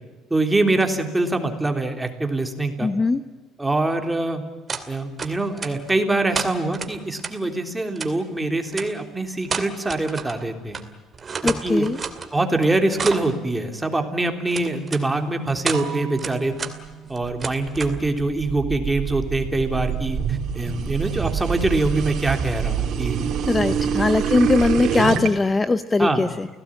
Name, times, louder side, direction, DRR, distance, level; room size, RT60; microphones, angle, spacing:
voice 1, 0.3-2.9 3.6-4.4 4.9-10.8 11.4-11.9 12.3-16.6 17.1-23.2 23.7-23.9 26.0-26.2, right 2 dB, 10° right, 5 dB, 3.3 m, -24 dB
voice 2, 2.8-3.2 11.4-12.0 23.4-26.5, left 3 dB, 20° left, 12 dB, 0.8 m, -20 dB
sound 1, 4.7-4.9 5.2-5.9 6.3-7.3 8.0-8.1 8.7-8.9 9.4-10.4 10.7-10.8 11.1-12.3 12.6-13.3 14.5-15.0 15.5-15.8 16.2-16.7 17.0-18.0, right 5 dB, 25° right, 2.5 m, -30 dB
sound 2, 15.7-18.6, right 9 dB, 90° right, 4.4 m, -39 dB
sound 3, 17.7-25.3, right 8 dB, 60° right, 3.6 m, -26 dB
29.5 x 17.0 x 8.8 m, 1.3 s
cardioid pair, 125°, 0 cm